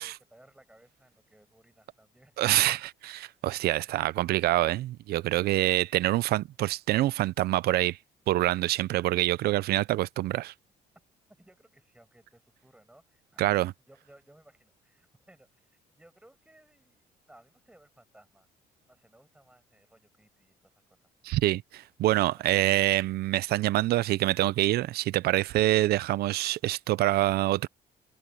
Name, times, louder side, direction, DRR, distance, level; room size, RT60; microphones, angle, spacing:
voice 1, 0.0-2.7 11.4-18.5 18.9-20.7 21.0-21.1 22.3-22.4, right 1 dB, 5° right, 6.6 m, -60 dB
voice 2, 2.4-8.0 8.3-10.5 13.4-13.7 21.2-27.7, right 16 dB, 70° right, 0.6 m, -26 dB
cardioid pair, 110°, 17 cm